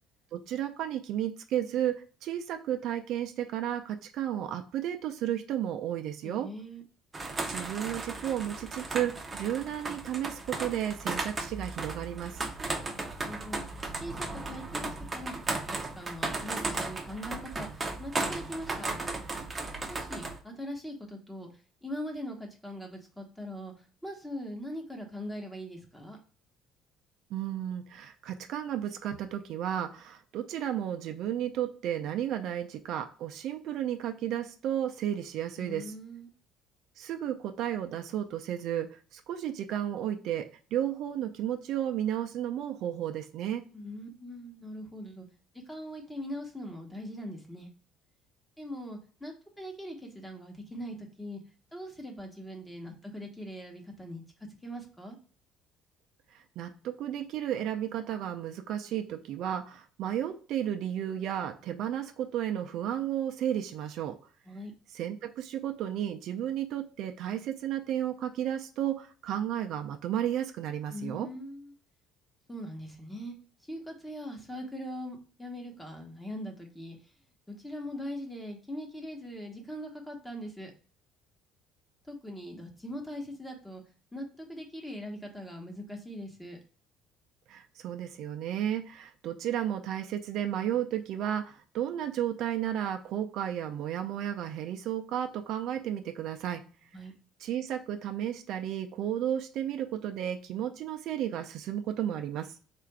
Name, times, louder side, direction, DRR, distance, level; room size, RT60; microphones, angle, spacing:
voice 1, 0.3-6.5 7.5-12.4 27.3-35.9 37.0-43.7 56.3-64.2 64.9-71.3 87.5-96.6 97.4-102.6, right 10 dB, 65° right, 5 dB, 0.4 m, -33 dB
voice 2, 6.2-6.8 12.9-13.6 14.0-15.3 15.9-18.9 19.9-21.5 21.8-23.7 24.0-26.2 35.6-36.3 43.7-45.3 45.7-47.7 48.6-51.4 51.7-55.2 64.5-64.7 70.9-71.7 72.5-73.3 73.6-77.0 77.5-80.7 82.1-83.8 84.1-86.6 96.9-97.1, equal, 5° left, 2 dB, 1.0 m, -41 dB
sound 1, 7.1-20.4, right 3 dB, 20° right, 0.7 m, -36 dB
3.7 x 2.5 x 4.5 m, 0.40 s
cardioid pair, 120°, 0 cm